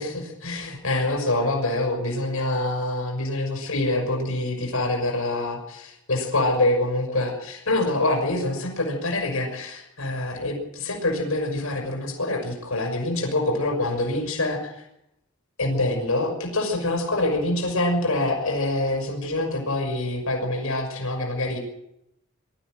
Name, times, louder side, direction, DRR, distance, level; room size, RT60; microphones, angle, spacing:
voice 1, 0.0-14.8 15.6-21.6, left 2 dB, 75° left, 1 dB, 6.1 m, -25 dB
24.0 x 14.0 x 7.9 m, 0.83 s
head